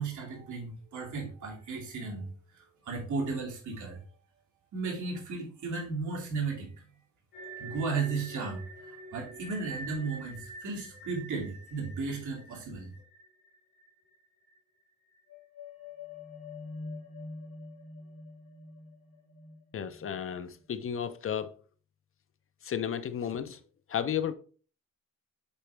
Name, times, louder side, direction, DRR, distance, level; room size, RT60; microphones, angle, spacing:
voice 1, 0.0-2.3 2.5-4.0 4.7-6.7 7.6-12.9, right 4 dB, 60° right, 2.4 m, -35 dB
sound 1, 7.3-14.2 14.4-14.6 15.1-20.5, left 1 dB, 75° left, 2.7 m, -46 dB
voice 2, 19.7-21.5 22.6-23.6 23.9-24.3, left 8 dB, 40° left, 0.5 m, -33 dB
8.2 x 4.0 x 3.4 m
wide cardioid pair, 155°, 34 cm